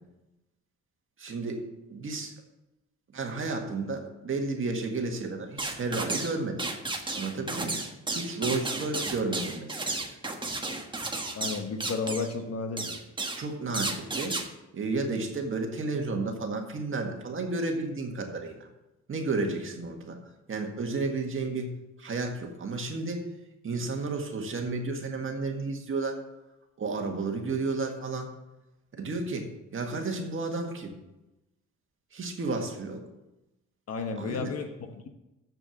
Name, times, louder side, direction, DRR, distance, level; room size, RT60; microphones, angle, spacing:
voice 1, 1.2-1.6 1.9-2.3 3.1-6.6 7.1-7.8 8.1-10.1 13.4-14.4 14.7-18.7 19.1-20.2 20.5-21.7 22.0-23.3 23.6-26.2 26.8-28.3 28.9-30.9 32.1-33.0 34.2-34.5, right 3 dB, 40° right, 3 dB, 1.8 m, -32 dB
sound 1, 5.6-6.3 6.6-12.3 12.8-13.4 13.7-14.5, right 2 dB, 15° right, 1.4 m, -33 dB
voice 2, 11.3-13.0 33.9-35.1, left 4 dB, 55° left, 6 dB, 1.4 m, -33 dB
7.5 x 6.8 x 7.3 m, 0.96 s
cardioid pair, 90°, 30 cm